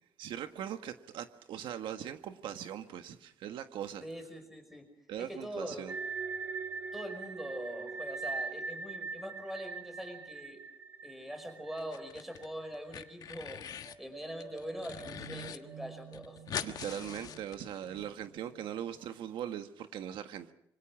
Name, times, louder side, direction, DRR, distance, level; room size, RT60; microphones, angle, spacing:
voice 1, 0.2-4.0 5.1-5.9 16.6-20.5, right 10 dB, 80° right, 1.6 m, -40 dB
voice 2, 4.0-4.9 5.2-5.9 6.9-10.6 11.0-16.9 18.2-18.4, equal, 5° right, 5.4 m, -43 dB
sound 1, 5.9-12.7 13.0-13.1 13.7-19.0, right 4 dB, 25° right, 1.9 m, -43 dB
sound 2, 11.8-12.5 12.7-14.0 14.4-15.6 15.9-16.0 16.1-18.1, left 9 dB, 50° left, 1.4 m, -42 dB
26.5 x 26.0 x 6.1 m
cardioid pair, 170°, 8 cm